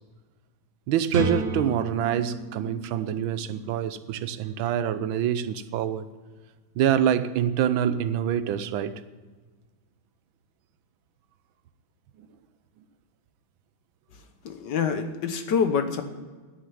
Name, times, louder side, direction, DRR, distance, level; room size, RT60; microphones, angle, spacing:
voice 1, 0.9-6.1 6.8-9.0, right 9 dB, 85° right, 1.5 m, -26 dB
sound 1, 1.1-4.9, right 2 dB, 40° right, 1.5 m, -33 dB
voice 2, 14.1-16.0, left 6 dB, 60° left, 1.6 m, -27 dB
10.5 x 9.9 x 9.2 m
omnidirectional pair, 2.2 m